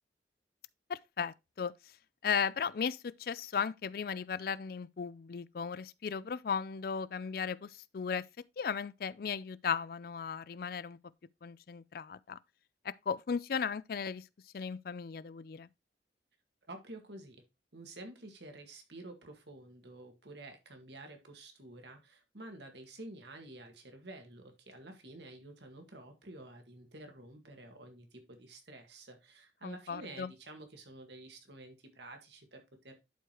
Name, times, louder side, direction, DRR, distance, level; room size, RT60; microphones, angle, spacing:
voice 1, 0.9-1.7 2.2-8.3 8.6-11.0 11.4-12.4 12.8-14.3 14.5-15.7 29.6-30.3, left 6 dB, 55° left, 0.4 m, -36 dB
voice 2, 16.7-17.4 17.7-33.0, right 2 dB, 75° right, 1.8 m, -50 dB
11.0 x 4.7 x 2.9 m
head